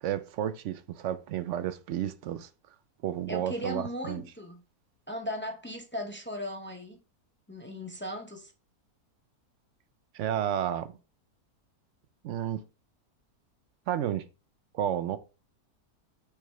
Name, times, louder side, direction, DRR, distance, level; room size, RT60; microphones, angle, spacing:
voice 1, 0.0-2.5 3.0-4.2 10.1-11.0 12.2-12.6 13.9-14.3 14.7-15.2, right 10 dB, 65° right, 0.8 m, -31 dB
voice 2, 3.3-4.6 5.1-7.0 7.5-8.5, equal, 20° left, 0.3 m, -37 dB
6.2 x 4.8 x 3.3 m
omnidirectional pair, 1.6 m